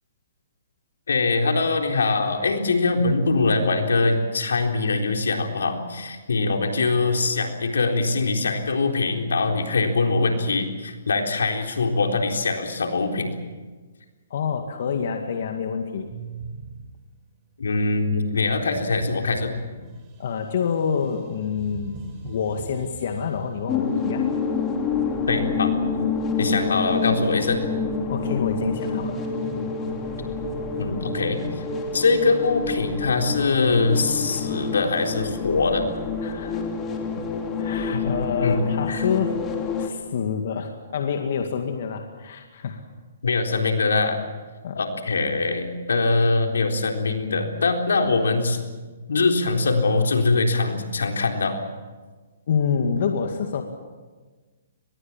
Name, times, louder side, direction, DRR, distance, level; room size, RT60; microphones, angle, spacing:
voice 1, 1.1-13.3 17.6-19.8 25.3-25.8 26.4-27.6 30.8-31.4 31.9-35.8 37.9-38.0 38.4-38.6 38.9-39.1 43.2-44.2 44.7-48.6 49.1-51.5, left 3 dB, 90° left, 3 dB, 3.9 m, -23 dB
voice 2, 14.3-16.1 20.2-24.2 28.1-29.2 36.2-36.6 37.6-39.4 39.8-42.8 44.6-44.8 52.5-53.6, left 6 dB, 60° left, 4 dB, 2.1 m, -27 dB
sound 1, 16.1-17.3 18.5-23.9 24.7-26.0, right 4 dB, 25° right, 5.4 m, -42 dB
sound 2, 23.7-39.9, left 5 dB, 20° left, 2.9 m, -27 dB
24.0 x 21.5 x 7.4 m, 1.4 s
hypercardioid pair, 150°, 0 cm